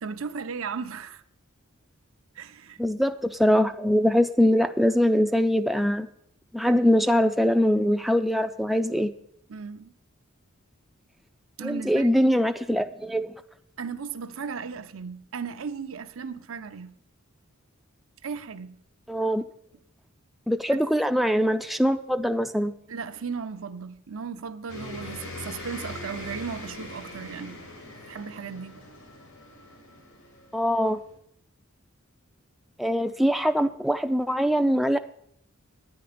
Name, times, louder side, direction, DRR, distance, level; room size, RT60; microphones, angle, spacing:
voice 1, 0.0-1.2 2.3-2.8 9.5-9.9 11.6-12.1 13.8-17.0 18.2-18.8 20.7-20.8 22.9-27.6 28.1-28.9, right 5 dB, 70° right, 0.7 m, -36 dB
voice 2, 2.8-6.1 6.5-9.1 11.6-13.3 19.1-19.4 20.5-22.7 30.5-31.0 32.8-35.0, equal, ahead, 0.3 m, -23 dB
sound 1, 24.7-31.2, left 1 dB, 90° left, 2.7 m, -41 dB
10.5 x 9.5 x 5.1 m
head